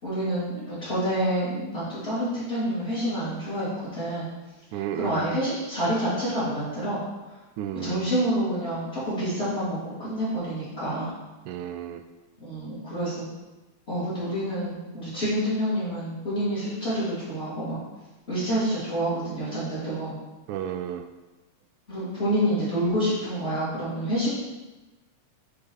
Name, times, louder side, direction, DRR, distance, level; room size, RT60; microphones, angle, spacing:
voice 1, 0.0-4.3 4.9-7.0 7.7-11.1 12.4-13.3 13.9-17.8 18.3-20.2 21.9-24.3, equal, 20° left, -11 dB, 2.4 m, -28 dB
voice 2, 4.7-5.3 7.6-8.1 11.5-12.0 20.5-21.1, right 10 dB, 80° right, 8 dB, 1.9 m, -32 dB
6.6 x 4.5 x 5.4 m, 1.1 s
omnidirectional pair, 3.6 m